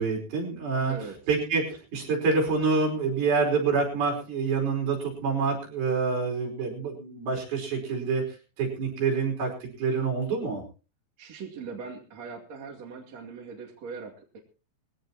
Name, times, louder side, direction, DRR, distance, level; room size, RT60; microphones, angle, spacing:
voice 1, 0.0-1.0 1.3-8.2 8.6-10.6, right 4 dB, 65° right, 1 dB, 6.8 m, -27 dB
voice 2, 11.2-14.4, right 5 dB, 45° right, 0 dB, 3.2 m, -40 dB
21.0 x 16.5 x 3.0 m, 0.34 s
omnidirectional pair, 4.7 m